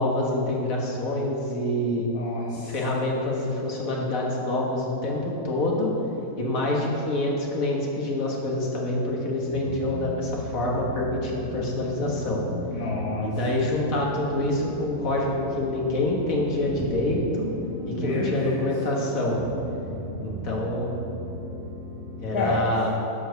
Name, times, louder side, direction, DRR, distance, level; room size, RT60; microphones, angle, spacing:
voice 1, 0.0-2.1 2.6-5.9 6.4-12.4 13.2-17.5 17.9-19.4 20.2-20.9 22.2-22.9, left 1 dB, 60° left, -2 dB, 1.8 m, -26 dB
voice 2, 2.1-2.7 12.7-13.3 18.0-18.7 22.3-22.6, left 3 dB, 75° left, -4 dB, 1.6 m, -29 dB
sound 1, 9.5-22.3, equal, 40° right, 1.3 m, -37 dB
11.0 x 4.8 x 6.5 m, 3.0 s
omnidirectional pair, 1.6 m